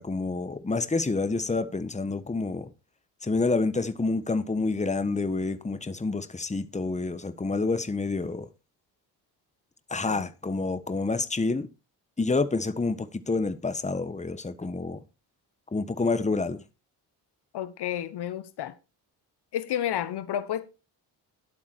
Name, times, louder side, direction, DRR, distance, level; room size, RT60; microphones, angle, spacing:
voice 1, 0.0-2.7 3.2-8.5 9.9-11.7 12.2-15.0 15.7-16.6, left 3 dB, 15° left, 1.4 m, -28 dB
voice 2, 17.5-18.7 19.5-20.7, left 11 dB, 65° left, 1.3 m, -31 dB
11.0 x 8.5 x 4.6 m
supercardioid pair, 60°, 42 cm